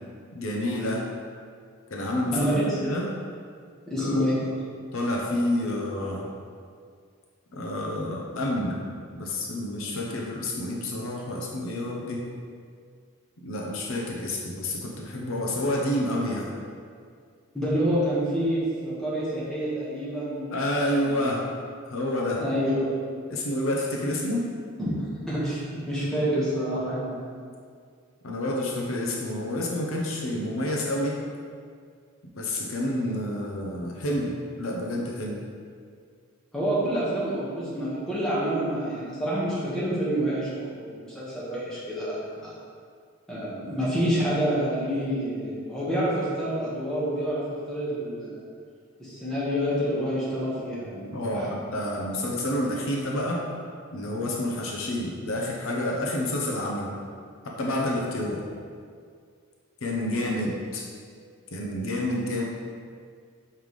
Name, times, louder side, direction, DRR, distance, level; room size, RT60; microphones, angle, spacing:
voice 1, 0.3-1.0 1.9-2.5 2.8-3.1 4.0-4.5 4.9-6.3 7.5-8.8 9.1-12.3 13.4-16.5 20.5-21.5 21.9-22.4 23.3-24.5 28.2-31.2 32.3-35.4 51.1-53.5 53.9-56.9 57.4-58.4 59.8-60.8 61.5-62.4, left 1 dB, 70° left, -2 dB, 0.8 m, -29 dB
voice 2, 2.3-2.8 3.9-4.4 17.5-20.6 21.0-21.4 22.4-22.9 24.0-24.2 24.8-27.1 36.5-42.5 43.3-48.4 49.0-51.6, equal, ahead, -10 dB, 1.4 m, -28 dB
5.6 x 5.2 x 3.2 m, 2.1 s
head